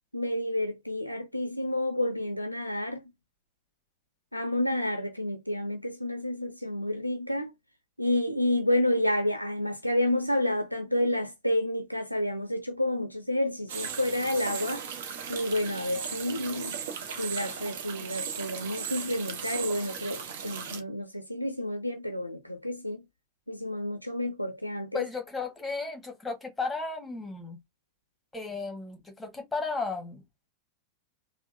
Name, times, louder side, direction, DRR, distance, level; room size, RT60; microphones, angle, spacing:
voice 1, 0.1-3.0 4.3-7.5 8.0-14.8 15.3-16.8 17.2-23.0 23.5-25.1, left 1 dB, 90° left, 0.4 m, -30 dB
sound 1, 13.7-20.8, right 7 dB, 55° right, 0.8 m, -37 dB
voice 2, 24.9-27.6 28.3-30.2, left 4 dB, 10° left, 1.3 m, -34 dB
3.5 x 2.2 x 2.5 m
figure-of-eight pair, 90°, 0 cm